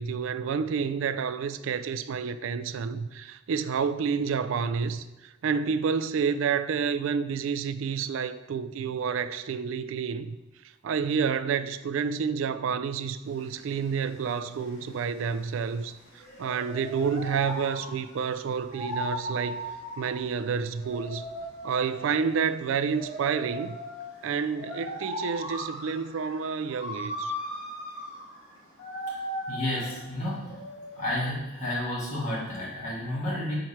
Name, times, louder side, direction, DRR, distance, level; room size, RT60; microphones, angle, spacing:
voice 1, 0.0-10.4 10.8-15.9 16.4-19.6 20.0-21.2 21.6-23.8 24.2-27.3, right 6 dB, 70° right, 0.3 m, -29 dB
sound 1, 13.3-31.3, equal, 80° left, 1.7 m, -38 dB
voice 2, 29.5-30.4 30.9-33.5, left 1 dB, 35° left, 2.1 m, -31 dB
4.6 x 4.6 x 5.6 m
head